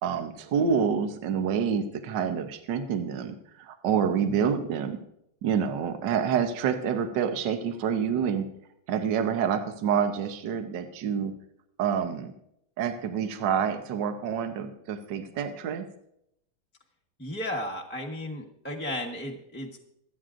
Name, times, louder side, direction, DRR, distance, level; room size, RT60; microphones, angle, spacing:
voice 1, 0.0-5.0 5.4-8.4 8.9-11.3 11.8-12.3 12.8-15.9, right 7 dB, 65° right, 6 dB, 1.5 m, -27 dB
voice 2, 17.2-19.8, left 1 dB, 10° left, 0 dB, 0.8 m, -34 dB
25.0 x 9.0 x 2.5 m, 0.75 s
omnidirectional pair, 2.2 m